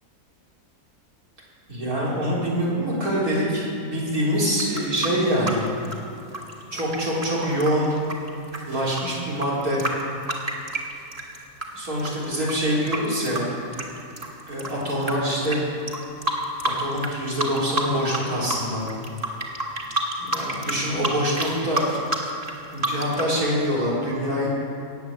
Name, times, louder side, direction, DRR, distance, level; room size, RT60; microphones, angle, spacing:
voice 1, 1.7-5.7 6.7-7.9 8.7-9.8 11.7-13.5 14.5-15.7 16.8-18.8 20.2-21.9 22.7-24.5, equal, 75° right, -6 dB, 4.3 m, -25 dB
sound 1, 4.5-11.7 12.0-15.1 15.4-15.6 15.9-17.1 17.4-18.2 18.5-23.3, right 1 dB, 25° right, 1.7 m, -29 dB
18.0 x 8.2 x 7.4 m, 2.7 s
omnidirectional pair, 1.6 m